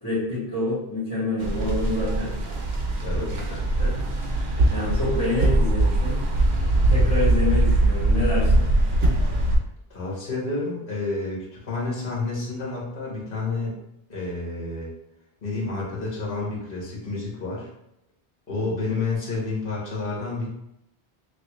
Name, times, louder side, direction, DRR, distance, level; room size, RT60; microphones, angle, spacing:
voice 1, 0.0-2.3 3.1-4.0 4.7-6.2 6.9-8.7, left 2 dB, 25° left, -15 dB, 1.6 m, -27 dB
sound 1, 1.4-9.6, right 2 dB, 80° right, 0.9 m, -22 dB
voice 2, 3.0-3.5 9.9-13.8 14.1-14.9 15.4-17.7 18.5-20.5, left 3 dB, 60° left, -4 dB, 1.2 m, -30 dB
3.1 x 2.5 x 3.0 m, 0.81 s
omnidirectional pair, 1.0 m